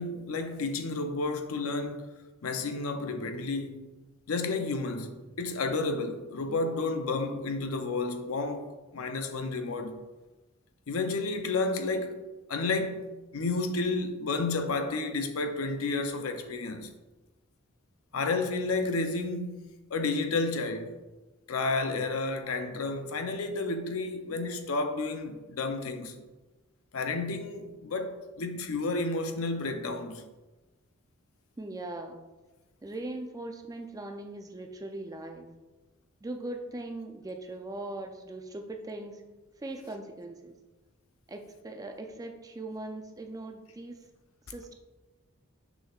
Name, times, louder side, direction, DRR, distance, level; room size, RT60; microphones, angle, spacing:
voice 1, 0.0-2.1 2.4-3.8 4.3-10.0 10.9-12.2 12.5-16.9 18.1-21.0 21.5-26.2 26.9-30.2, left 3 dB, 75° left, 0.6 m, -31 dB
voice 2, 31.6-32.2 32.8-35.5 36.2-39.2 39.6-40.6 41.3-44.0 44.5-44.7, right 2 dB, 15° right, 0.4 m, -40 dB
6.4 x 6.2 x 2.4 m
head